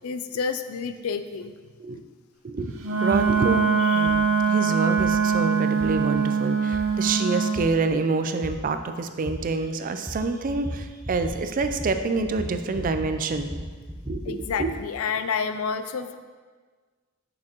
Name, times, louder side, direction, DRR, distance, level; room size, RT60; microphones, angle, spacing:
voice 1, 0.0-1.5 3.8-4.1 14.3-16.2, left 5 dB, 75° left, 10 dB, 0.4 m, -29 dB
voice 2, 2.4-13.5 14.0-14.7, right 3 dB, 40° right, 8 dB, 0.4 m, -27 dB
Wind instrument woodwind instrument, 2.8-7.6, right 5 dB, 65° right, 0.8 m, -22 dB
sound 1, 3.1-3.3 4.1-4.2 5.0-5.1 5.8-5.9 6.7-6.8 7.5-7.7 8.4-8.5 9.3-9.4 10.1-10.2 10.5-10.8 11.1-11.3 11.6-11.9 12.2-13.1 13.3-14.7, equal, 5° right, 0.8 m, -35 dB
6.5 x 6.0 x 3.0 m, 1.5 s
head